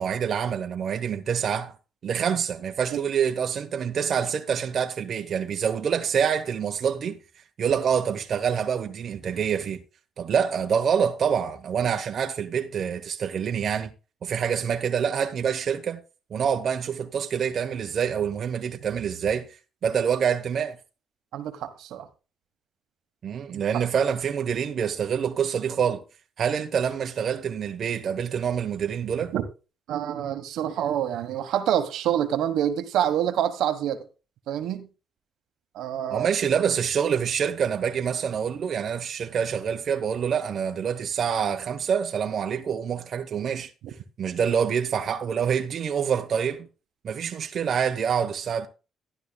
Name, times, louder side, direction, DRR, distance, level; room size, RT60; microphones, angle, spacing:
voice 1, 0.0-1.7 2.0-7.2 7.6-9.8 10.2-13.9 14.2-16.0 16.3-19.5 19.8-20.8 23.2-26.0 26.4-29.3 36.1-43.7 44.2-46.7 47.0-48.7, right 7 dB, 55° right, 1.0 m, -26 dB
voice 2, 21.3-22.1 23.5-23.8 29.3-29.4 29.9-34.0 34.5-34.9 35.7-36.3, right 10 dB, 85° right, 1.3 m, -27 dB
12.0 x 11.0 x 2.3 m
cardioid pair, 90°, 0 cm